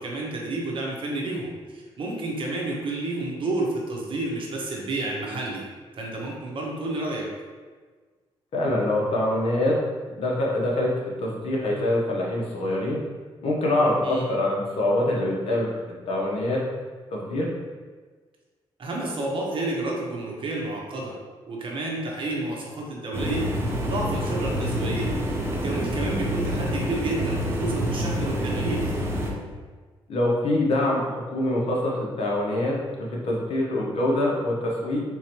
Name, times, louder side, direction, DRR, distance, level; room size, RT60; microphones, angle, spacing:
voice 1, 0.0-5.6 5.9-7.3 14.0-14.2 18.8-21.1 21.5-23.4 23.8-25.1 25.6-28.9, right 2 dB, 55° right, -2 dB, 0.9 m, -30 dB
voice 2, 8.5-9.8 10.1-10.9 11.2-13.0 13.4-15.7 16.1-16.6 17.1-17.5 30.1-35.0, left 1 dB, 70° left, -3 dB, 0.9 m, -24 dB
sound 1, 23.1-29.3, equal, 25° right, 0.7 m, -27 dB
3.8 x 3.0 x 2.9 m, 1.4 s
cardioid pair, 85°, 11 cm